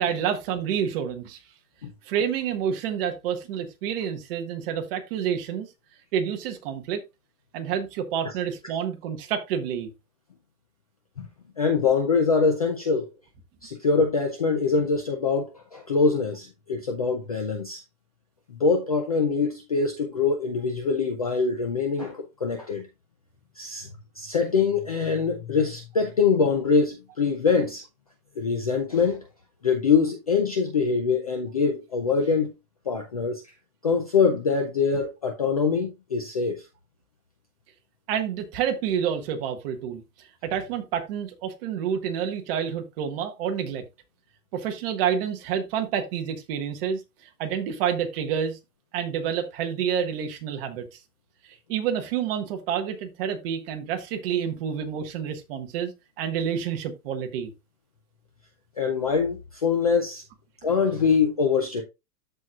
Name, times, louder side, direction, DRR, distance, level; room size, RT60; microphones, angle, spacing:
voice 1, 0.0-1.4 2.0-5.7 6.1-7.0 7.5-9.9 38.1-43.8 44.5-47.0 47.4-48.6 48.9-51.0 51.7-55.9 56.2-57.5, right 8 dB, 35° right, 1.4 m, -28 dB
voice 2, 11.6-13.1 13.6-17.8 18.6-22.8 23.6-23.9 24.2-27.8 28.4-29.2 29.6-32.5 32.9-33.4 33.8-36.6 58.8-60.2 60.6-61.8, left 5 dB, 25° left, 0.4 m, -24 dB
13.5 x 4.5 x 2.4 m
supercardioid pair, 165°, 49 cm